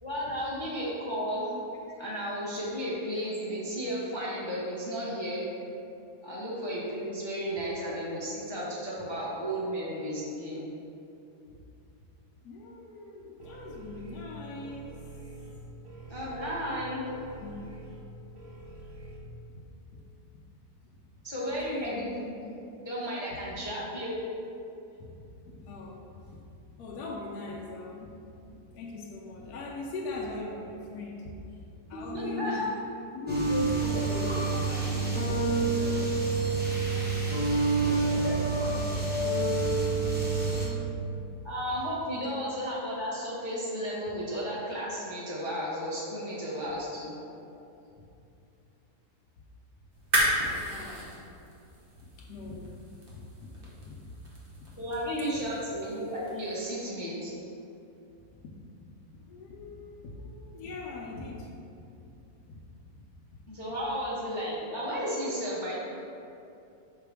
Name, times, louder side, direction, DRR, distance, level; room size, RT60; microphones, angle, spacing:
voice 1, 0.0-1.5 2.0-5.5 6.2-10.7 16.1-17.0 21.2-22.4 22.8-24.2 31.9-32.6 41.4-47.2 54.8-57.3 63.5-65.8, equal, 30° left, -8 dB, 0.6 m, -33 dB
voice 2, 12.4-15.0 17.4-17.9 19.0-19.1 19.5-19.6 19.9-20.0 20.3-20.4 20.8-22.0 24.0-24.6 24.9-26.4 26.8-31.6 31.9-32.6 33.1-36.1 36.9-40.5 41.3-41.4 47.5-47.6 48.0-48.1 50.2-50.4 50.7-51.2 51.9-52.8 53.1-54.1 54.5-54.8 55.3-55.5 58.2-58.5 58.8-61.5 61.8-62.1 62.4-62.6 63.0-63.1 63.3-63.4, left 3 dB, 70° left, -3 dB, 1.1 m, -42 dB
sound 1, 13.4-19.2, right 2 dB, 60° right, 1.0 m, -46 dB
sound 2, 33.3-40.7, right 3 dB, 10° right, 0.8 m, -27 dB
sound 3, 49.9-56.7, right 1 dB, 35° right, 1.2 m, -34 dB
6.0 x 4.6 x 3.4 m, 2.7 s
omnidirectional pair, 1.8 m